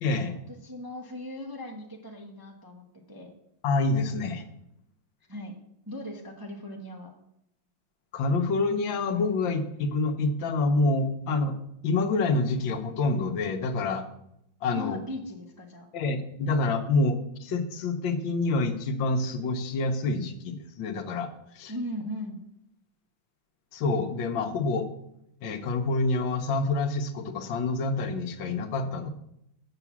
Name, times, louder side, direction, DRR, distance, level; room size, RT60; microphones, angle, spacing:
voice 1, 0.0-0.3 3.6-4.4 8.1-11.6 11.8-14.1 14.6-15.0 15.9-21.3 21.5-21.7 23.7-24.9 25.4-29.1, left 3 dB, 75° left, 7 dB, 1.6 m, -27 dB
voice 2, 0.6-3.3 5.3-5.5 5.9-7.1 14.7-15.9 21.7-22.4, left 1 dB, 15° right, 1 dB, 0.7 m, -38 dB
7.8 x 6.0 x 7.1 m, 0.80 s
omnidirectional pair, 2.1 m